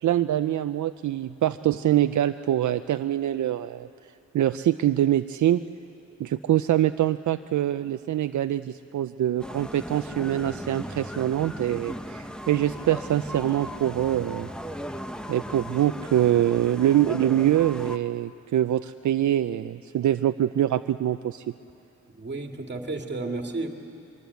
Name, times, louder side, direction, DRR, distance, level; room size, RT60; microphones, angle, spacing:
voice 1, 0.0-3.9 4.3-5.6 6.2-14.5 15.3-21.4, right 12 dB, 75° right, 10 dB, 0.5 m, -24 dB
sound 1, 9.4-18.0, equal, 5° left, 0.8 m, -37 dB
voice 2, 22.1-23.7, right 3 dB, 35° right, 3 dB, 2.0 m, -32 dB
23.0 x 23.0 x 8.2 m, 2.7 s
wide cardioid pair, 140°, 29 cm